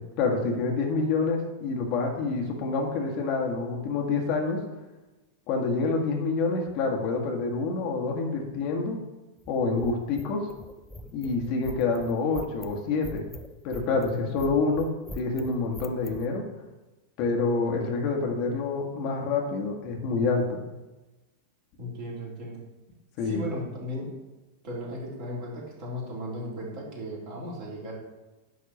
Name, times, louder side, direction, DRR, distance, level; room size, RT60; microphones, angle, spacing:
voice 1, 0.2-4.6 5.5-9.0 9.5-10.5 11.1-13.3 13.6-14.9 15.2-16.4 17.2-20.6 23.2-23.4, left 4 dB, 45° left, 1 dB, 1.7 m, -27 dB
sound 1, 9.4-16.3, left 1 dB, 5° left, 0.7 m, -42 dB
voice 2, 21.8-22.6 23.2-24.3 24.6-27.9, equal, 45° right, -4 dB, 3.8 m, -36 dB
10.5 x 4.2 x 7.1 m, 1.1 s
figure-of-eight pair, 90°, 0 cm